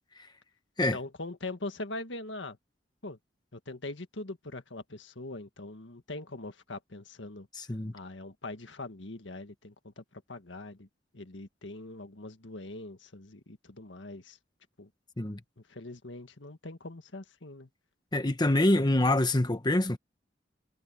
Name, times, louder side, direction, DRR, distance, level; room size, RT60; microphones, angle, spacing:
voice 1, 0.9-2.6 3.0-3.2 3.5-7.5 7.9-10.9 11.1-14.4 14.8-14.9 15.6-17.7, left 2 dB, 80° left, 1.8 m, -42 dB
voice 2, 7.6-7.9 15.2-15.4 18.1-20.0, left 1 dB, 25° left, 1.1 m, -25 dB
head